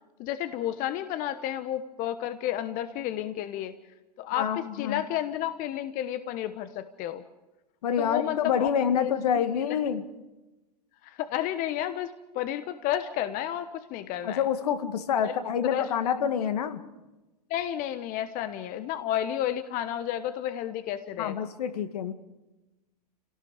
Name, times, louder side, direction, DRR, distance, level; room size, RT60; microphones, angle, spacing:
voice 1, 0.2-3.7 4.2-7.2 8.0-8.7 9.0-9.4 11.0-14.4 15.2-15.3 15.6-15.9 17.5-21.5, left 11 dB, 40° left, 11 dB, 1.2 m, -31 dB
voice 2, 4.3-5.0 7.8-10.0 14.2-16.8 21.2-22.1, left 8 dB, 70° left, 9 dB, 2.1 m, -27 dB
30.0 x 18.0 x 5.2 m, 1.0 s
hypercardioid pair, 95°, 21 cm